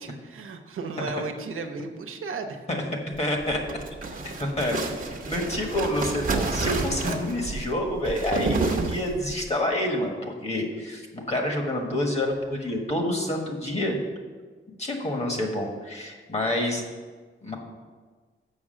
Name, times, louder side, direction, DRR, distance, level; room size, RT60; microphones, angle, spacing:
voice 1, 0.0-2.6, right 4 dB, 85° right, 5 dB, 1.0 m, -34 dB
voice 2, 3.2-3.6 4.4-4.8 5.2-14.0 14.8-16.8 17.4-17.6, left 1 dB, 30° left, 1 dB, 1.5 m, -28 dB
sound 1, 3.4-9.4, right 3 dB, 40° right, 1.0 m, -29 dB
7.2 x 6.1 x 7.5 m, 1.4 s
wide cardioid pair, 150°, 21 cm